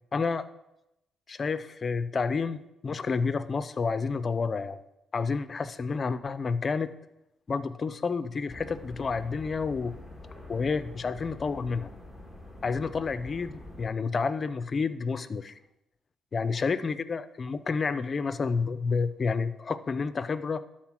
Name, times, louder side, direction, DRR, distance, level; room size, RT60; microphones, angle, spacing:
voice 1, 0.1-0.4 1.3-4.8 5.1-6.9 7.5-9.9 10.5-11.9 12.6-15.6 16.3-20.6, left 4 dB, 40° left, 13 dB, 0.5 m, -30 dB
sound 1, 8.5-13.9, left 1 dB, 5° right, 1.8 m, -45 dB
12.0 x 4.4 x 5.9 m, 0.89 s
cardioid pair, 90°, 0 cm